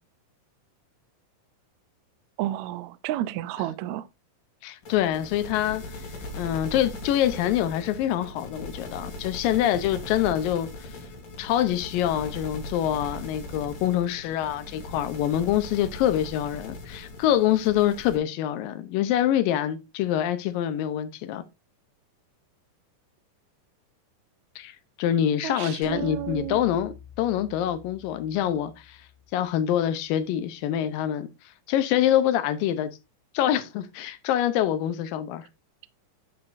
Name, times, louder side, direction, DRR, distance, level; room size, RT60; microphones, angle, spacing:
voice 1, 2.4-4.0 25.4-26.6, right 13 dB, 80° right, 1.6 m, -31 dB
voice 2, 4.6-5.8 6.4-10.9 11.4-21.5 24.6-29.0 29.3-31.3 31.7-32.9 33.3-35.5, left 11 dB, 85° left, 2.6 m, -25 dB
sound 1, 4.8-18.2, left 2 dB, 70° left, 4.0 m, -39 dB
sound 2, 25.8-30.2, left 8 dB, 45° left, 3.6 m, -49 dB
9.5 x 8.8 x 2.6 m
omnidirectional pair, 3.9 m